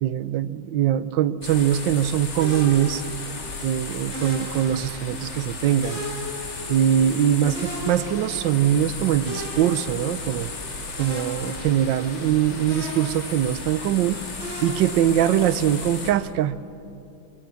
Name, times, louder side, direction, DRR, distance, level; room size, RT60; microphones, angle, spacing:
voice 1, 0.0-3.0 3.6-6.0 6.7-10.5 11.0-14.2 14.6-16.6, right 10 dB, 70° right, 15 dB, 1.3 m, -22 dB
sound 1, 1.4-16.1, left 3 dB, 85° left, 3.6 m, -35 dB
sound 2, 2.4-3.6 4.1-5.3 5.8-7.2 7.5-8.7 9.3-10.6 11.0-12.4 12.7-13.9 14.4-15.8, equal, 30° right, 7.6 m, -36 dB
28.0 x 23.0 x 7.0 m, 2.7 s
omnidirectional pair, 2.3 m